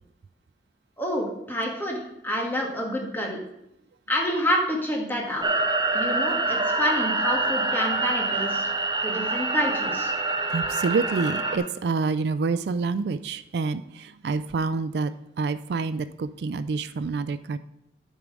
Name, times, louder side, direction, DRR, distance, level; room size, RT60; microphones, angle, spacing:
voice 1, 1.0-3.4 4.1-5.5 5.9-8.7 9.0-10.1, equal, 10° left, -1 dB, 1.5 m, -28 dB
sound 1, 5.4-11.6, right 3 dB, 25° right, 0.7 m, -26 dB
voice 2, 10.5-15.1 15.4-17.6, right 4 dB, 65° right, 13 dB, 0.3 m, -27 dB
10.0 x 4.8 x 5.3 m, 0.81 s
head